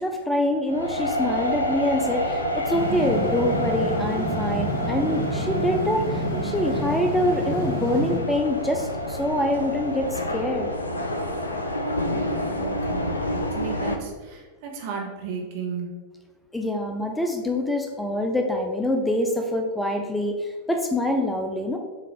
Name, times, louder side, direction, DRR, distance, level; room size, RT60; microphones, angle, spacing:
voice 1, 0.0-10.7 16.5-21.8, left 1 dB, 5° left, 3 dB, 0.4 m, -25 dB
sound 1, 0.7-14.0, equal, 80° left, 0.4 m, -29 dB
sound 2, 2.7-8.2, right 1 dB, 90° right, 1.4 m, -29 dB
voice 2, 12.5-15.9, right 6 dB, 50° right, 0 dB, 0.9 m, -34 dB
6.6 x 2.5 x 2.9 m, 1.3 s
figure-of-eight pair, 90°, 0 cm